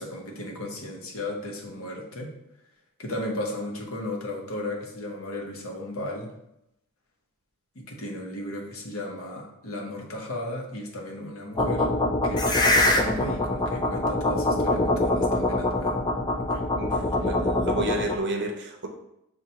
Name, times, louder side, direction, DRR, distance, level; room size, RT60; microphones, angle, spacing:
voice 1, 0.0-2.3 3.0-6.3 7.7-11.9 12.2-16.0 16.5-16.6, left 1 dB, 65° left, 0 dB, 0.8 m, -35 dB
sound 1, 11.6-18.2, left 1 dB, 20° left, 0.4 m, -24 dB
voice 2, 16.8-18.9, right 2 dB, 50° right, 2 dB, 0.6 m, -31 dB
6.4 x 2.2 x 2.8 m, 0.83 s
head